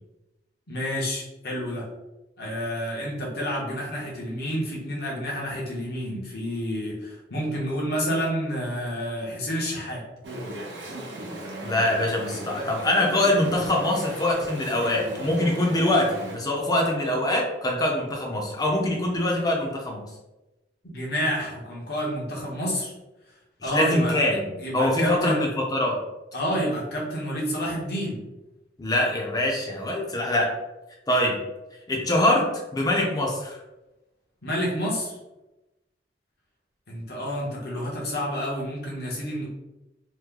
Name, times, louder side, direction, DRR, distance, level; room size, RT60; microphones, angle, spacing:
voice 1, 0.7-1.8 2.4-10.0 20.8-22.9 23.6-24.2 24.6-25.4 26.3-28.2 34.4-35.1 36.9-39.5, equal, 60° left, -4 dB, 1.0 m, -29 dB
Chatter / Stream, 10.2-16.4, right 1 dB, 70° right, 0.7 m, -37 dB
voice 2, 11.6-20.0 23.6-24.5 24.7-26.0 28.8-30.5 31.1-31.4 31.9-32.5 32.7-33.6, left 1 dB, 20° left, -1 dB, 0.6 m, -24 dB
3.1 x 2.2 x 3.6 m, 1.0 s
head